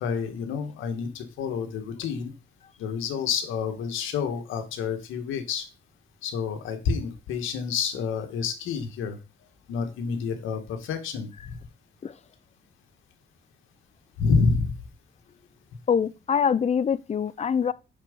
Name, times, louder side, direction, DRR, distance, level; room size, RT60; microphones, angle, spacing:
voice 1, 0.0-2.3 2.8-5.7 6.2-9.2 9.7-11.6 14.2-14.8, left 5 dB, 85° left, 1.7 m, -28 dB
voice 2, 15.9-17.7, left 7 dB, 35° left, 0.6 m, -24 dB
7.4 x 6.1 x 5.3 m
cardioid pair, 90°, 20 cm